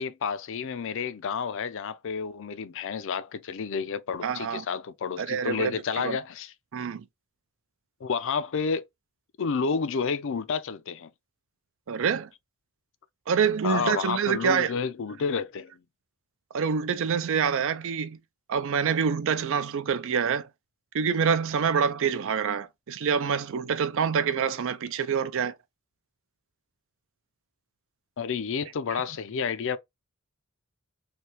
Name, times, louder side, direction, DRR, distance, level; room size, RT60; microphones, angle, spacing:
voice 1, 0.0-6.5 8.0-8.8 9.4-11.1 13.6-15.7 28.2-29.8, left 5 dB, 60° left, 0.4 m, -30 dB
voice 2, 4.2-4.6 5.2-5.7 6.0-6.2 6.7-7.0 11.9-12.3 13.3-14.7 16.5-18.2 18.5-20.5 20.9-25.6, right 6 dB, 60° right, 0.4 m, -26 dB
3.3 x 2.7 x 2.8 m
head